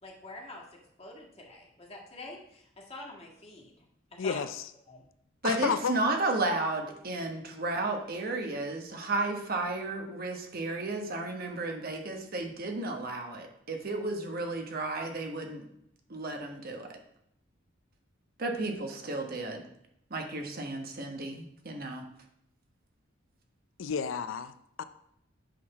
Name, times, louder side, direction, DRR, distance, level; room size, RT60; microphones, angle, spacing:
voice 1, 0.0-3.7 4.1-4.5 4.9-5.0, left 2 dB, 30° left, -2 dB, 1.8 m, -46 dB
voice 2, 4.2-4.6 5.4-6.0 23.8-24.5 24.8-24.9, left 6 dB, 80° left, 12 dB, 0.4 m, -31 dB
voice 3, 5.4-15.6 16.1-16.9 18.4-19.6 20.1-22.0, right 2 dB, 50° right, 3 dB, 1.1 m, -33 dB
8.3 x 4.0 x 5.8 m, 0.76 s
head